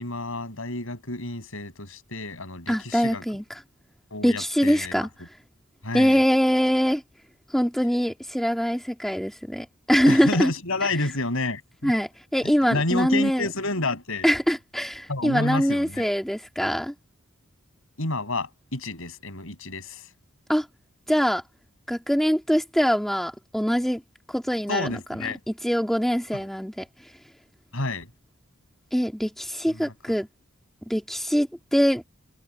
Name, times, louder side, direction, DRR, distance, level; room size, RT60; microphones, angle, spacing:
voice 1, 0.0-3.2 4.1-4.9 5.8-6.2 10.1-11.9 12.7-14.3 15.1-16.1 18.0-20.1 24.7-25.4 26.3-26.4 27.7-28.1 29.7-29.9, left 2 dB, 70° left, 6.3 m, -29 dB
voice 2, 2.7-3.4 4.2-5.1 5.9-7.0 7.5-10.5 11.8-13.5 14.2-16.9 20.5-20.7 21.1-21.4 21.9-24.0 24.3-25.2 25.6-26.9 28.9-30.3 30.9-32.0, equal, ahead, 2.0 m, -23 dB
head